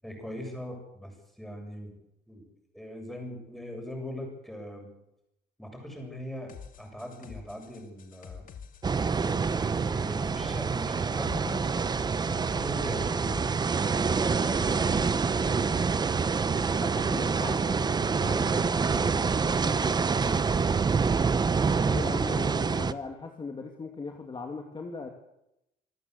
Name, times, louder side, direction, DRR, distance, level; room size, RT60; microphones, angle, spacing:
voice 1, 0.0-1.9 2.3-2.4 2.7-4.9 5.6-8.4 9.5-11.6 12.5-13.5 14.0-15.6 21.5-22.2, equal, ahead, 2 dB, 7.8 m, -41 dB
sound 1, 6.5-14.4, left 7 dB, 55° left, 2.5 m, -49 dB
sound 2, 8.8-22.9, right 5 dB, 25° right, 0.9 m, -26 dB
sound 3, 10.2-14.7, right 8 dB, 85° right, 3.2 m, -53 dB
voice 2, 16.6-20.4 21.8-25.1, left 4 dB, 30° left, 3 dB, 2.6 m, -39 dB
26.5 x 13.5 x 8.2 m, 0.86 s
cardioid pair, 110°, 17 cm